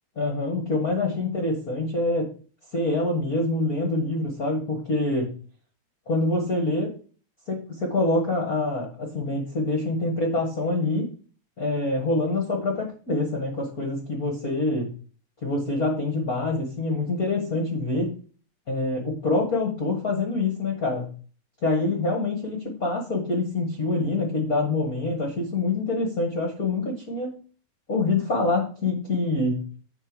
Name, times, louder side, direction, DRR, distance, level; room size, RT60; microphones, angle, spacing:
voice 1, 0.1-2.3 2.7-5.3 6.1-6.9 7.5-11.1 11.6-14.9 15.4-18.1 18.7-21.1 21.6-27.3 27.9-29.6, left 2 dB, 65° left, 0 dB, 0.8 m, -25 dB
9.4 x 4.3 x 6.2 m, 0.39 s
omnidirectional pair, 4.5 m